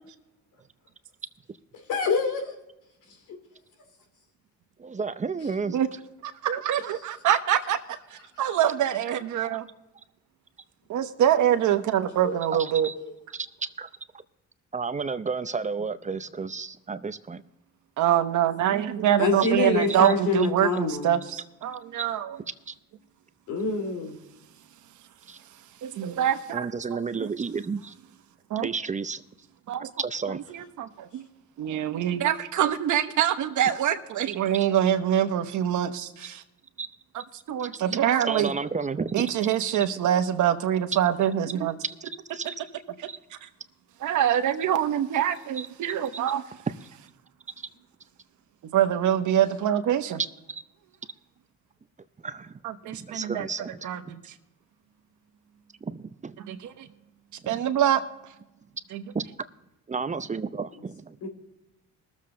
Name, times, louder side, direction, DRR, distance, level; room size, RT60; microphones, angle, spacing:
voice 1, 1.9-2.5 3.3-3.4 12.9-13.1 19.2-21.1 23.5-24.2 61.2-61.3, left 3 dB, 90° left, 2.6 m, -26 dB
voice 2, 4.8-5.8 12.6-12.9 13.3-13.5 13.8-13.9 14.7-17.4 20.0-20.1 22.7-22.8 25.3-25.4 26.5-27.9 28.6-29.2 30.0-30.4 36.8-36.9 37.6-37.7 38.3-39.3 41.8-41.9 42.3-42.6 43.1-43.2 45.6-45.7 46.1-46.2 50.5-50.6 52.2-52.5 52.9-54.1 55.9-56.4 57.4-57.6 59.1-59.2 59.9-61.2, right 5 dB, 25° right, 0.6 m, -32 dB
voice 3, 6.2-7.8 8.4-9.7 10.9-12.9 18.0-22.4 25.8-26.7 27.2-27.3 28.5-28.7 29.7-29.9 30.5-31.2 31.6-36.4 37.5-38.5 39.1-41.7 43.0-43.1 44.0-46.4 48.7-50.2 52.6-53.5 53.8-54.2 56.4-56.8 57.5-58.0 58.9-59.0, right 10 dB, 75° right, 1.1 m, -25 dB
20.5 x 7.4 x 3.8 m
cardioid pair, 90°, 30 cm